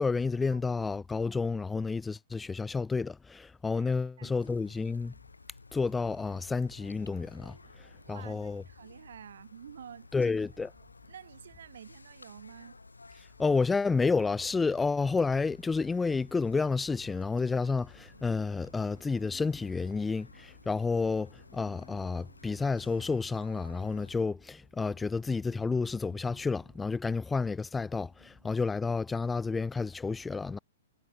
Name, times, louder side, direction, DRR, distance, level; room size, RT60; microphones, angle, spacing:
voice 1, 0.0-5.1 5.7-7.6 8.1-8.6 10.1-10.7 13.4-30.6, left 4 dB, 10° left, 0.4 m, -30 dB
voice 2, 0.5-0.8 3.7-4.3 8.0-10.3 11.0-12.8, right 9 dB, 65° right, 2.4 m, -50 dB
sound 1, 4.4-24.2, left 3 dB, 85° left, 1.4 m, -55 dB
sound 2, 17.3-29.0, right 4 dB, 80° right, 3.8 m, -64 dB
figure-of-eight pair, 115°, 0 cm